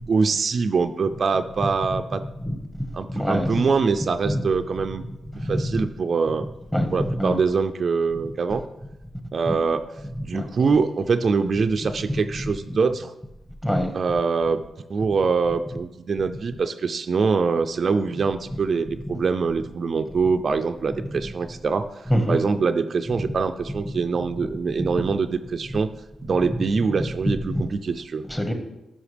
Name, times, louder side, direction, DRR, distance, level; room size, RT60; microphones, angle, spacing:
voice 1, 0.1-2.2 2.9-5.0 5.4-6.5 6.9-8.6 9.3-9.8 10.2-13.1 13.9-14.6 14.9-25.9 26.2-28.2, right 5 dB, 55° right, 8 dB, 0.4 m, -24 dB
voice 2, 3.1-3.5 4.3-4.4 5.5-5.7 6.7-6.9 7.2-7.4 9.5-9.6 10.3-10.4 13.6-13.9 22.1-22.4 28.3-28.5, equal, 10° left, 5 dB, 1.4 m, -23 dB
11.5 x 5.8 x 3.4 m, 0.94 s
cardioid pair, 70°, 0 cm